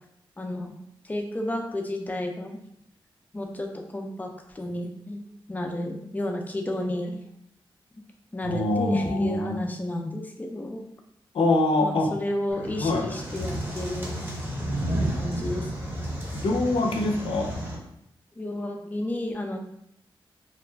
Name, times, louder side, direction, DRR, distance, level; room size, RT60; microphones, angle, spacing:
voice 1, 0.4-0.7 1.0-2.6 3.3-4.3 4.5-5.2 5.5-7.2 8.3-10.9 11.8-14.2 15.1-15.7 18.4-19.6, left 1 dB, 15° left, 2 dB, 0.4 m, -32 dB
voice 2, 8.4-9.6 11.3-12.1 12.8-13.1 16.3-17.5, left 2 dB, 75° left, 2 dB, 0.5 m, -24 dB
sound 1, 12.5-17.8, right 1 dB, 25° right, 0.8 m, -32 dB
2.4 x 2.1 x 3.2 m, 0.75 s
cardioid pair, 80°, 9 cm